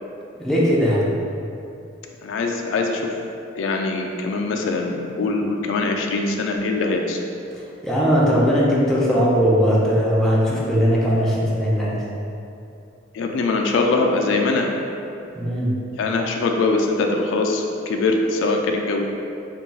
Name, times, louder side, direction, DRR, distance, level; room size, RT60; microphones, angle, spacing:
voice 1, 0.4-1.1 7.8-12.0 15.3-15.8, equal, 5° left, -7 dB, 0.4 m, -19 dB
voice 2, 2.2-3.2 3.6-7.2 13.1-14.7 16.0-19.0, left 3 dB, 80° left, 3 dB, 0.3 m, -22 dB
2.3 x 2.3 x 3.9 m, 2.7 s
head